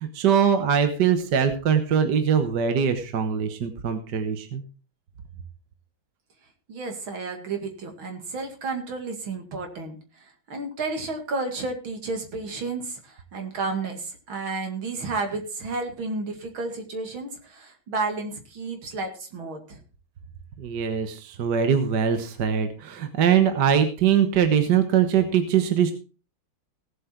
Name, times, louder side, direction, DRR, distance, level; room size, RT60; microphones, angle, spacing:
voice 1, 0.0-4.6 20.6-25.9, right 8 dB, 60° right, 8 dB, 1.7 m, -22 dB
voice 2, 6.7-19.8, right 3 dB, 75° right, 5 dB, 3.0 m, -32 dB
17.5 x 7.8 x 4.5 m, 0.36 s
omnidirectional pair, 2.2 m